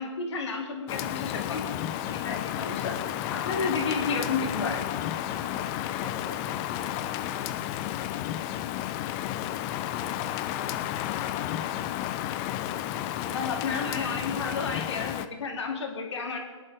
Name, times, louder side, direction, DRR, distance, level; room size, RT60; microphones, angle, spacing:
voice 1, 0.0-1.7 2.1-3.0 3.3-4.8 13.3-16.4, left 4 dB, 65° left, 2 dB, 2.5 m, -31 dB
Rain, 0.9-15.3, left 12 dB, 25° left, 0.4 m, -32 dB
voice 2, 5.3-8.8 9.2-10.3 10.8-11.7 12.4-14.1, right 3 dB, 50° right, 0 dB, 3.7 m, -52 dB
22.0 x 10.5 x 3.5 m, 1.5 s
hypercardioid pair, 140°, 16 cm